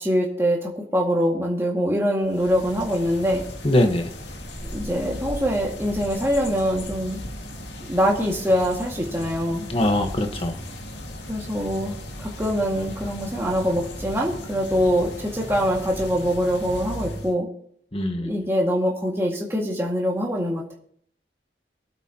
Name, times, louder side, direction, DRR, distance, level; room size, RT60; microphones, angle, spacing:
voice 1, 0.0-3.4 4.7-7.2 7.9-9.7 11.3-17.5 18.2-20.6, equal, 15° right, -2 dB, 2.0 m, -24 dB
sound 1, 2.2-17.3, left 1 dB, 75° left, 2.0 m, -36 dB
voice 2, 3.6-4.1 9.7-10.6 17.9-18.3, left 1 dB, 30° left, 6 dB, 1.3 m, -22 dB
23.5 x 8.1 x 2.9 m, 0.64 s
head